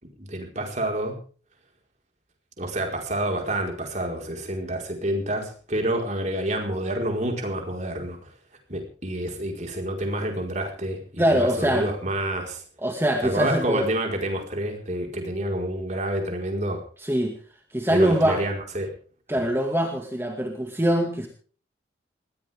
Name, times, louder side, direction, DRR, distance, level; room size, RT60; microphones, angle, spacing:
voice 1, 0.2-1.2 2.6-8.2 8.7-12.6 13.2-16.8 17.9-18.9 19.4-19.5, right 1 dB, 40° right, 2 dB, 4.9 m, -28 dB
voice 2, 11.2-11.9 12.8-13.8 17.0-17.3 17.7-18.4 19.3-21.3, right 1 dB, 15° right, 3 dB, 2.1 m, -23 dB
21.5 x 16.5 x 3.7 m, 0.41 s
head